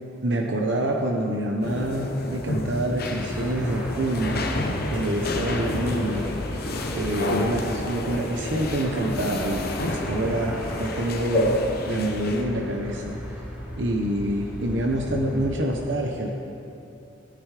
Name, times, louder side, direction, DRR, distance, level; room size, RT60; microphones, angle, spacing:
voice 1, 0.2-4.5 4.9-6.3 6.9-11.6 11.9-13.3 13.8-16.3, right 1 dB, 70° right, 0 dB, 1.0 m, -26 dB
sound 1, 1.6-12.4, left 2 dB, 55° left, 1.0 m, -30 dB
sound 2, 3.0-15.5, equal, 5° right, 3.2 m, -35 dB
16.5 x 10.0 x 5.0 m, 2.9 s
head